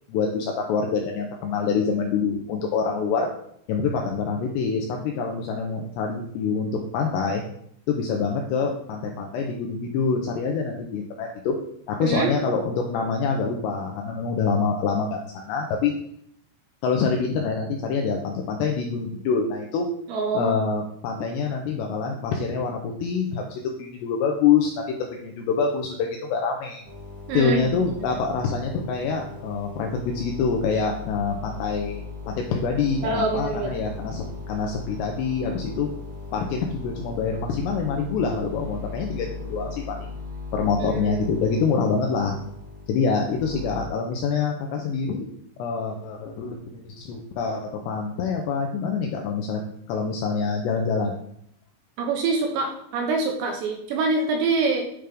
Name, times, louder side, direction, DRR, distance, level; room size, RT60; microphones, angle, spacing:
voice 1, 0.1-3.3 3.7-7.4 7.9-11.6 11.9-15.9 16.8-19.9 20.3-26.8 27.3-32.0 32.3-35.9 36.3-40.2 40.5-42.4 42.9-45.3 45.6-49.6 49.9-51.1, left 5 dB, 90° left, 1 dB, 2.5 m, -26 dB
voice 2, 12.0-12.3 20.1-20.6 27.3-27.6 28.0-28.1 33.0-33.7 40.8-41.2 52.0-54.8, right 3 dB, 80° right, 2 dB, 2.7 m, -25 dB
sound 1, 26.8-43.9, left 4 dB, 30° left, 0.5 m, -38 dB
9.1 x 3.4 x 5.1 m, 0.69 s
omnidirectional pair, 5.7 m